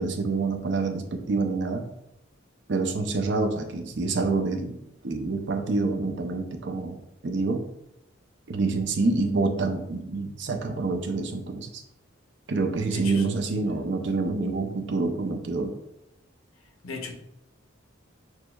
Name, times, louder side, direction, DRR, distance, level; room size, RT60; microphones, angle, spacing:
voice 1, 0.0-1.9 2.7-7.0 7.2-7.6 8.5-11.8 12.5-15.7, right 3 dB, 60° right, 4 dB, 0.5 m, -27 dB
voice 2, 12.9-13.3 16.8-17.1, left 4 dB, 90° left, 4 dB, 0.6 m, -36 dB
6.1 x 2.1 x 2.2 m, 0.82 s
head